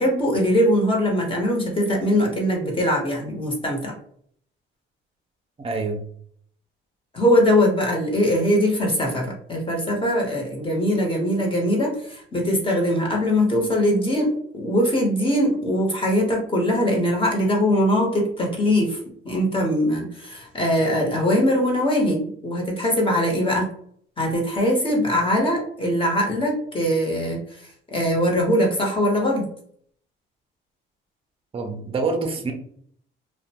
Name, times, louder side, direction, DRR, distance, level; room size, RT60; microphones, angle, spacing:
voice 1, 0.0-3.9 7.1-19.0 19.2-23.7 24.2-27.4 27.9-29.5, equal, 25° left, -1 dB, 0.9 m, -21 dB
voice 2, 5.6-6.0 31.5-32.5, right 3 dB, 25° right, 4 dB, 0.5 m, -26 dB
2.5 x 2.1 x 2.8 m, 0.63 s
cardioid pair, 100°, 21 cm